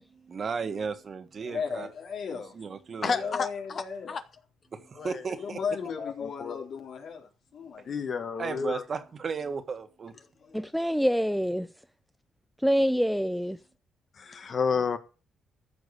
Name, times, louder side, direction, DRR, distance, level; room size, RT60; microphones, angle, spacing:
voice 1, 0.2-1.9 2.6-3.3 4.7-5.6 8.4-10.1, right 5 dB, 45° right, 1.8 m, -35 dB
voice 2, 1.4-2.6 3.0-4.2 5.3-8.1, left 6 dB, 65° left, 3.7 m, -36 dB
voice 3, 3.0-4.2 5.0-5.2 6.0-6.6 7.8-8.8 10.5-10.7 14.2-15.0, left 5 dB, 45° left, 1.5 m, -31 dB
voice 4, 10.5-11.7 12.6-13.6, equal, ahead, 0.6 m, -25 dB
14.0 x 5.3 x 8.4 m
cardioid pair, 90°, 0 cm